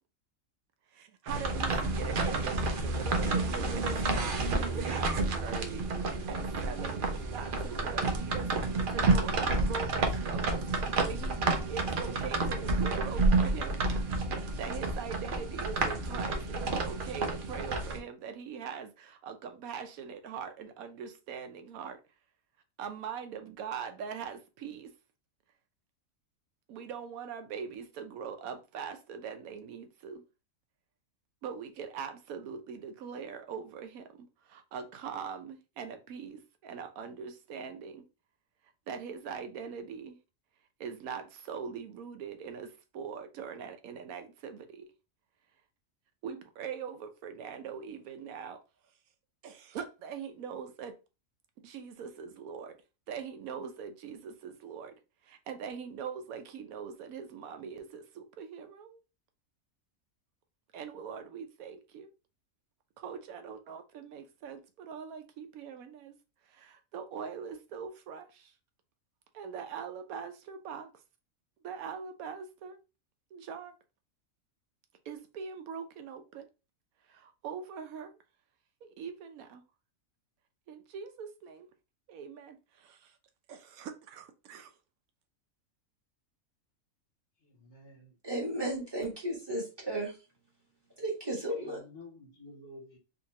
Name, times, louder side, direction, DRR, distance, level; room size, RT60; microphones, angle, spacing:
voice 1, 0.9-13.8 14.3-22.0 22.8-24.9 26.7-30.2 31.4-38.0 38.9-40.2 40.8-44.9 46.2-48.6 49.4-51.0 51.6-52.8 53.1-55.0 55.2-59.0 60.7-62.1 63.0-66.2 66.4-68.5 69.3-70.9 71.6-72.8 73.3-73.8 75.0-76.5 77.0-78.2 78.8-79.6 80.7-81.7 82.1-83.2 83.5-84.7, right 6 dB, 90° right, 1.1 m, -42 dB
sound 1, 1.3-18.0, right 3 dB, 55° right, 0.6 m, -30 dB
voice 2, 87.4-88.2 91.5-93.0, left 2 dB, 50° left, 1.2 m, -51 dB
voice 3, 88.2-90.1 91.0-91.8, right 1 dB, 20° right, 1.3 m, -34 dB
3.7 x 2.6 x 2.8 m
omnidirectional pair, 1.5 m